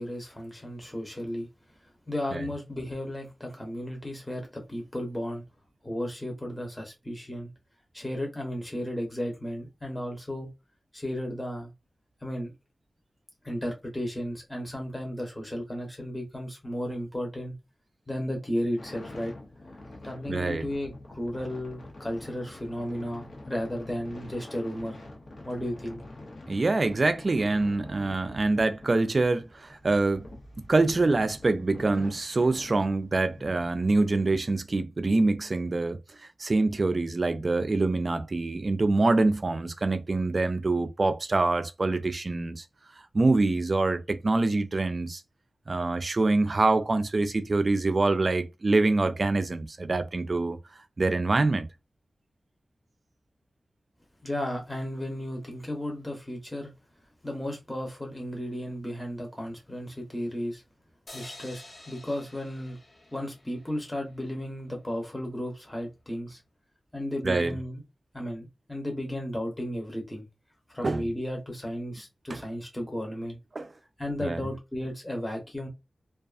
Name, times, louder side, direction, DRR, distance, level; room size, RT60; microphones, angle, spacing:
voice 1, 0.0-1.5 2.1-5.4 5.8-7.5 7.9-10.5 10.9-11.7 12.2-12.5 13.4-17.5 18.1-19.3 20.0-25.0 25.4-26.0 54.2-56.7 57.2-60.6 61.1-62.8 63.1-66.4 66.9-67.8 68.1-70.3 70.7-73.4 74.0-75.7, equal, 10° left, 0.8 m, -34 dB
sound 1, 18.8-34.4, left 2 dB, 85° left, 0.7 m, -46 dB
voice 2, 20.3-20.7 26.5-30.3 30.7-36.0 36.4-42.6 43.1-45.2 45.7-50.6 51.0-51.7 67.2-67.6 70.8-71.1 72.3-72.4 73.6-73.7 74.2-74.4, right 3 dB, 50° right, 0.3 m, -25 dB
sound 2, 61.1-64.4, left 2 dB, 50° left, 0.9 m, -49 dB
2.4 x 2.3 x 2.4 m
wide cardioid pair, 80°, 0 cm